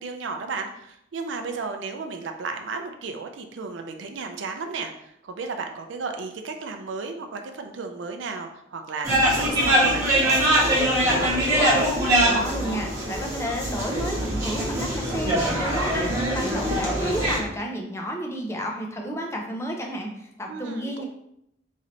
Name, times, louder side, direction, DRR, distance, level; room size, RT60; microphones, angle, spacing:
voice 1, 0.0-11.4 20.5-21.0, right 4 dB, 80° right, 5 dB, 0.5 m, -34 dB
sound 1, 9.0-17.4, right 1 dB, 15° right, 1.1 m, -23 dB
voice 2, 12.3-21.0, equal, 15° left, 1 dB, 0.5 m, -32 dB
3.1 x 2.7 x 3.9 m, 0.77 s
head